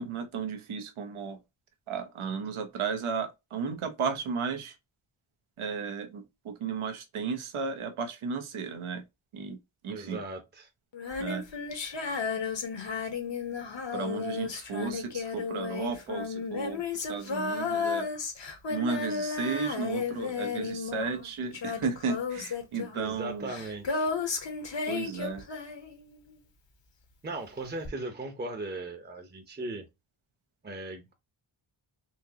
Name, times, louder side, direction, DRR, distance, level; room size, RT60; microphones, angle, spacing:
voice 1, 0.0-1.4 1.9-4.7 5.6-9.0 9.3-9.6 9.8-10.2 11.2-11.4 13.9-18.1 18.7-23.5 24.9-25.4, right 5 dB, 80° right, 0.9 m, -34 dB
voice 2, 9.9-10.7 22.9-24.1 27.2-29.9 30.6-31.1, right 2 dB, 20° right, 0.8 m, -38 dB
Female singing, 10.9-26.3 27.8-27.9, left 5 dB, 60° left, 1.2 m, -33 dB
4.4 x 2.8 x 2.8 m
cardioid pair, 70°, 49 cm